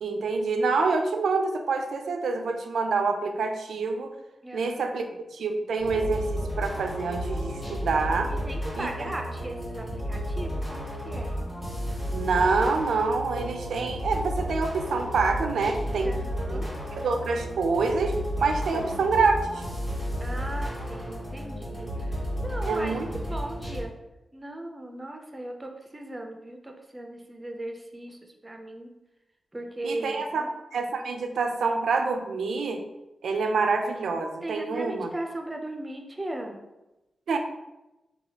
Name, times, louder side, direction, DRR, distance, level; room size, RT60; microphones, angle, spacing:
voice 1, 0.0-4.1 4.5-5.1 5.3-8.3 8.8-8.9 12.1-16.1 16.5-16.6 17.0-19.6 22.7-23.1 29.8-32.8 33.2-35.1 37.3-37.4, right 4 dB, 85° right, 5 dB, 0.3 m, -26 dB
voice 2, 4.4-5.2 8.3-11.4 16.0-16.8 18.7-19.0 20.2-23.9 24.3-28.9 29.5-30.5 34.4-36.6, right 1 dB, 20° right, 3 dB, 0.4 m, -38 dB
sound 1, 5.8-23.8, equal, 15° left, 1.3 m, -33 dB
3.2 x 2.2 x 2.8 m, 0.99 s
cardioid pair, 75°, 0 cm